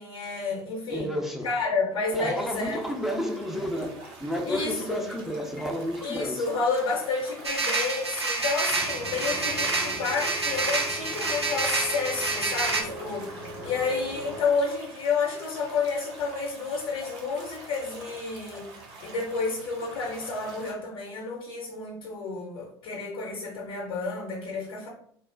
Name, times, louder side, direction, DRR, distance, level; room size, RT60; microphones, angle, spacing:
voice 1, 0.0-1.1 1.4-2.8 4.5-5.1 6.0-18.7 19.0-24.9, left 4 dB, 55° left, 0.6 m, -30 dB
voice 2, 0.9-1.5 2.1-6.5, equal, ahead, 0.4 m, -31 dB
sound 1, 2.4-20.7, right 2 dB, 55° right, 0.7 m, -46 dB
sound 2, 7.4-12.8, right 3 dB, 90° right, 0.4 m, -28 dB
sound 3, 8.7-14.4, left 1 dB, 40° right, 1.1 m, -40 dB
3.0 x 2.0 x 2.5 m
figure-of-eight pair, 65°, 13 cm